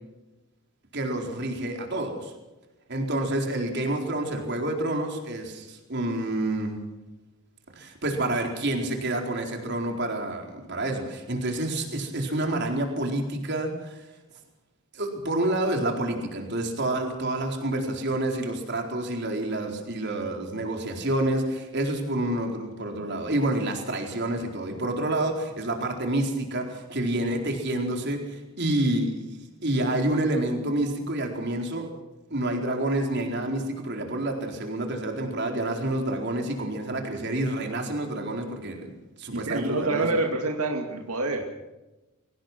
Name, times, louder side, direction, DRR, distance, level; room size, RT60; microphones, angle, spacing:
voice 1, 0.9-2.3 2.9-6.8 7.7-14.0 14.9-29.2 29.6-31.9 32.3-40.1, right 1 dB, 50° right, 3 dB, 4.3 m, -28 dB
voice 2, 39.3-41.4, right 2 dB, 85° right, 2 dB, 2.5 m, -27 dB
23.5 x 18.5 x 6.2 m, 1.0 s
head